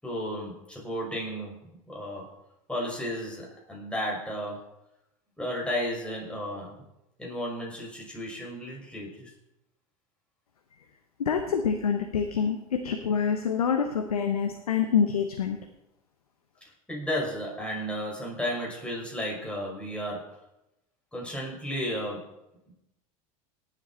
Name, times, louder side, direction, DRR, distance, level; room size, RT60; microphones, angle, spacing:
voice 1, 0.0-2.4 2.7-4.7 5.4-6.8 7.2-9.3 16.9-20.4 21.1-22.4, equal, 5° left, -3 dB, 5.8 m, -33 dB
voice 2, 11.2-15.6, left 7 dB, 90° left, 5 dB, 1.0 m, -26 dB
18.0 x 8.1 x 4.3 m, 0.88 s
hypercardioid pair, 85°, 19 cm